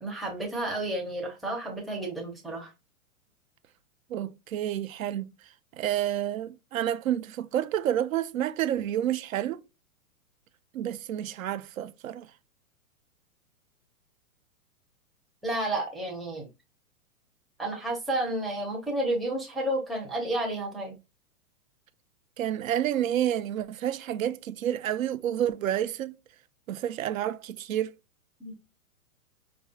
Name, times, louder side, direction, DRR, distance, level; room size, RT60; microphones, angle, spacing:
voice 1, 0.0-2.7 15.4-16.5 17.6-20.9 28.4-28.5, right 1 dB, ahead, 0.5 m, -31 dB
voice 2, 4.1-5.3 5.8-9.6 10.7-12.3 22.4-26.2 26.7-27.9, right 11 dB, 70° right, 0.5 m, -29 dB
4.8 x 2.3 x 2.6 m
hypercardioid pair, 120°, 43 cm